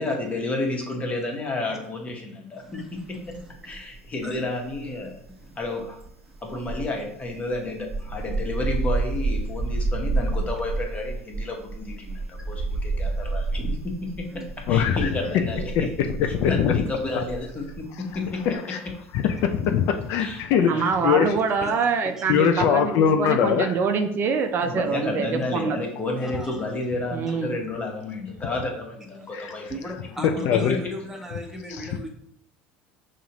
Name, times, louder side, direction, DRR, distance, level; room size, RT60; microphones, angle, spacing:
voice 1, 0.0-3.0 3.6-5.2 5.6-6.0 6.4-14.4 14.7-15.9 16.5-18.5 19.0-19.1 20.2-20.9 21.6-21.7 24.6-29.7 30.2-30.8, left 2 dB, 25° left, 1 dB, 1.1 m, -31 dB
voice 2, 2.5-3.7 4.2-4.4 5.3-5.7 6.3-6.4 12.1-12.8 13.4-13.5 14.3-14.5 19.4-19.5 20.2-20.3 21.5-21.8 22.2-22.4 26.2-26.6 29.2-29.3 29.7-32.1, equal, 10° right, 2 dB, 0.9 m, -39 dB
sound 1, 3.2-4.1 4.3-17.8 18.1-18.4, right 3 dB, 25° right, 1.2 m, -30 dB
voice 3, 14.7-15.1 15.3-15.5 15.8-16.8 18.5-18.8 19.1-20.7 21.0-21.4 22.3-23.8 29.3-29.5 30.5-30.8, left 8 dB, 65° left, 7 dB, 0.4 m, -22 dB
voice 4, 20.7-25.8 27.1-27.6, right 5 dB, 45° right, 6 dB, 0.4 m, -25 dB
5.3 x 2.5 x 2.9 m, 0.70 s
supercardioid pair, 95°, 5 cm